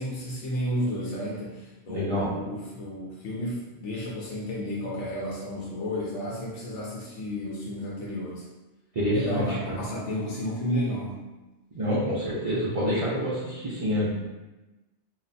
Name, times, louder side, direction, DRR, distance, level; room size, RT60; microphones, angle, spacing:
voice 1, 0.0-8.5 9.1-11.2, equal, 80° left, -4 dB, 0.9 m, -32 dB
voice 2, 1.9-2.3 9.0-9.8 11.7-14.1, equal, 45° right, -7 dB, 0.4 m, -27 dB
2.4 x 2.2 x 3.9 m, 1.1 s
omnidirectional pair, 1.2 m